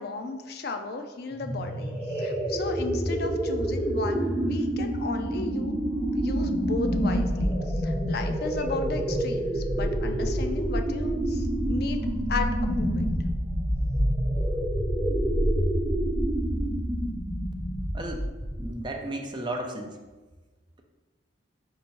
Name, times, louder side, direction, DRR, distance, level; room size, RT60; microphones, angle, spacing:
voice 1, 0.0-12.0 12.3-13.2, left 3 dB, 55° left, 5 dB, 0.4 m, -34 dB
sound 1, 1.3-18.9, right 1 dB, 10° right, 1.3 m, -27 dB
voice 2, 17.9-18.2 18.6-20.0, right 1 dB, 25° right, 2 dB, 0.5 m, -34 dB
4.1 x 2.7 x 4.5 m, 1.2 s
head